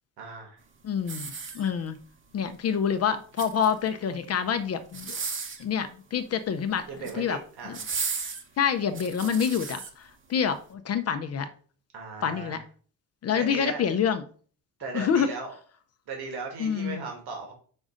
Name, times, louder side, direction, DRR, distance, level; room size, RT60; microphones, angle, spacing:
voice 1, 0.2-0.6 6.9-7.8 11.9-12.6 13.3-13.8 14.8-15.5 16.1-17.5, right 4 dB, 80° right, 1.9 m, -37 dB
voice 2, 0.8-2.0 2.3-5.2 5.6-7.4 7.6-7.8 8.6-11.5 12.2-12.6 13.2-14.2 14.9-15.3 16.6-17.0, left 7 dB, 40° left, 0.5 m, -27 dB
sound 1, 1.0-2.0 3.1-3.9 4.9-5.7 6.8-7.2 7.7-9.9 10.5-10.6, right 5 dB, 30° right, 0.8 m, -35 dB
5.3 x 3.7 x 5.0 m
cardioid pair, 165°, 38 cm